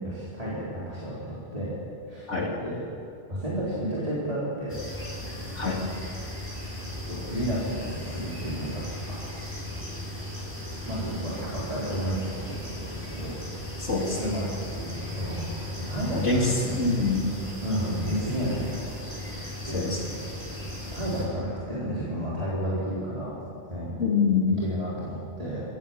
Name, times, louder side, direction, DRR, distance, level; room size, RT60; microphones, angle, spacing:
voice 1, 0.0-1.8 2.1-2.3 2.6-2.8 3.3-4.7 7.1-9.2 10.9-12.6 12.9-13.6 14.2-15.5 15.8-17.0 17.6-18.9 19.3-19.9 20.9-23.9 24.5-25.6, equal, 30° right, -8 dB, 4.6 m, -32 dB
sound 1, 4.7-21.3, left 1 dB, 10° left, 5.4 m, -36 dB
voice 2, 13.8-14.2 16.1-16.5 16.8-17.3 19.7-20.0 24.0-24.5, left 4 dB, 90° left, -1 dB, 3.8 m, -25 dB
26.0 x 16.0 x 7.4 m, 2.6 s
omnidirectional pair, 1.2 m